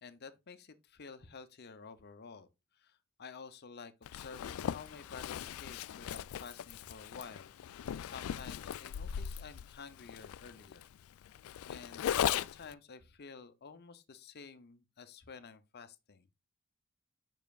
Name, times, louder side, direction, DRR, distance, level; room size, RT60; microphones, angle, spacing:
voice 1, 0.0-2.5 2.8-7.5 8.0-10.9 11.7-16.3, left 5 dB, 50° left, 0.7 m, -51 dB
Zipper (clothing), 4.0-12.7, left 9 dB, 75° left, 0.3 m, -38 dB
7.2 x 5.7 x 2.4 m
head